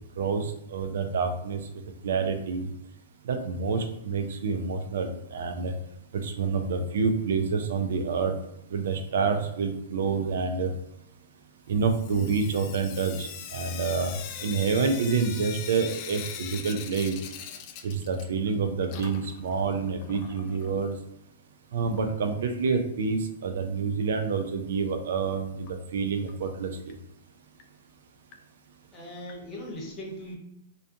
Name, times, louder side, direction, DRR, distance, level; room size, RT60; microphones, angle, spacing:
voice 1, 0.1-2.7 3.2-5.7 6.1-8.4 8.7-10.7 11.7-17.2 17.8-21.0 21.7-27.0, right 5 dB, 70° right, 6 dB, 0.3 m, -28 dB
Sink (filling or washing) / Drip, 11.8-18.5 18.8-20.7 21.9-22.0 22.3-22.4 22.7-22.8 25.7-25.8 26.3-26.4 26.9-27.0 27.6-27.7 28.3-28.4 29.3-29.4, left 8 dB, 45° left, 0.3 m, -41 dB
voice 2, 28.9-30.4, equal, 20° left, -3 dB, 0.9 m, -39 dB
2.4 x 2.2 x 2.6 m, 0.77 s
hypercardioid pair, 130°, 0 cm